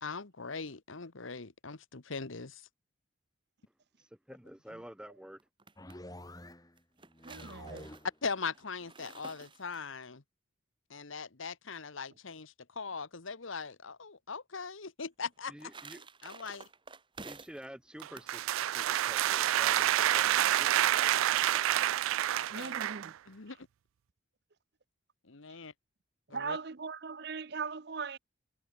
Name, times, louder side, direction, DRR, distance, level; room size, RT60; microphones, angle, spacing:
voice 1, 0.0-2.6 4.7-4.8 8.2-10.2 10.9-15.7 16.2-16.6 22.3-22.8 23.3-23.6 25.2-25.7 26.3-26.6, left 5 dB, 75° left, 1.3 m, -40 dB
voice 2, 4.0-5.4 15.5-16.0 17.2-21.2, equal, 5° right, 0.6 m, -50 dB
sound 1, 5.4-6.0 6.8-10.1 15.2-17.7 18.0-18.3 19.1-19.5, right 4 dB, 25° right, 2.0 m, -51 dB
sound 2, 5.8-6.8 7.1-8.2, left 1 dB, 20° left, 2.8 m, -48 dB
voice 3, 7.2-8.0 22.5-23.1 26.3-28.2, right 5 dB, 50° right, 0.7 m, -39 dB
sound 3, 18.0-23.1, right 12 dB, 85° right, 0.3 m, -28 dB
head